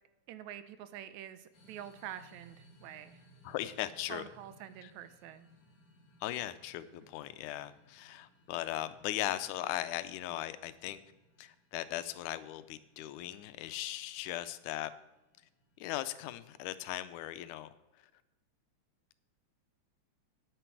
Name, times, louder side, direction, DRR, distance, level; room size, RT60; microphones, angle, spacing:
voice 1, 0.3-3.2 4.1-5.5, right 10 dB, 75° right, 12 dB, 1.9 m, -47 dB
sound 1, 1.5-16.6, equal, 40° left, 2.1 m, -64 dB
voice 2, 3.4-4.2 4.8-4.9 6.2-11.0 11.4-14.9 15.8-17.7, left 14 dB, 85° left, 13 dB, 2.1 m, -38 dB
9.5 x 9.1 x 4.7 m, 1.0 s
omnidirectional pair, 3.5 m